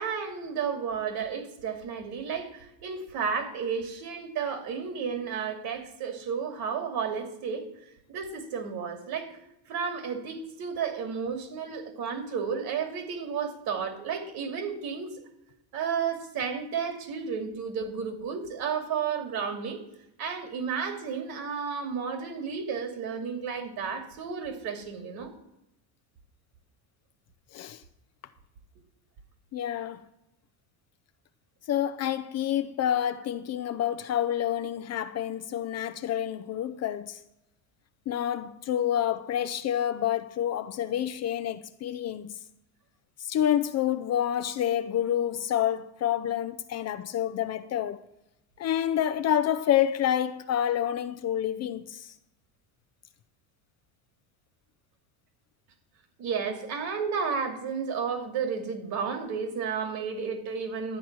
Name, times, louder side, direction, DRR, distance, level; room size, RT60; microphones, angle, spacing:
voice 1, 0.0-7.7 8.1-9.4 9.7-15.2 15.7-19.8 20.2-25.3 56.2-61.0, right 6 dB, 55° right, 2.7 m, -32 dB
voice 2, 29.5-30.1 31.7-37.2 38.1-42.4 43.2-48.0 48.6-52.1, left 10 dB, 35° left, 0.6 m, -28 dB
11.5 x 8.9 x 6.1 m
cardioid pair, 135°, 44 cm